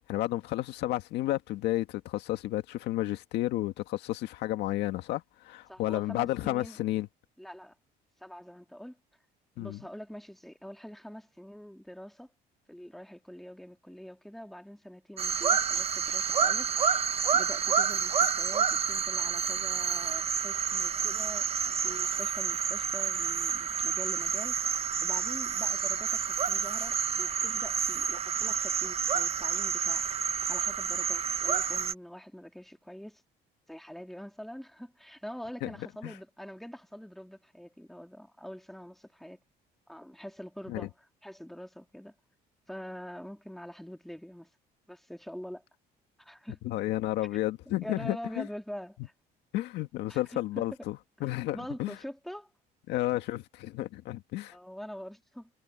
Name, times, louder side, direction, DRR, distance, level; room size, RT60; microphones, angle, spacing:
voice 1, 0.1-7.1 9.6-9.8 35.6-35.7 36.0-36.1 40.7-40.9 46.6-48.5 49.5-52.0 52.9-54.5, left 16 dB, 85° left, 1.9 m, -32 dB
voice 2, 5.7-6.8 7.4-7.7 8.2-9.0 9.6-12.3 12.7-16.9 17.3-30.1 30.5-33.2 33.7-39.4 39.9-40.9 41.2-42.1 42.7-44.5 44.9-45.6 46.2-46.6 47.3-47.4 47.8-49.1 50.1-50.4 51.2-52.5 54.5-55.5, equal, ahead, 2.8 m, -45 dB
sound 1, 15.2-31.9, right 7 dB, 35° right, 1.0 m, -29 dB
cardioid pair, 110°, 17 cm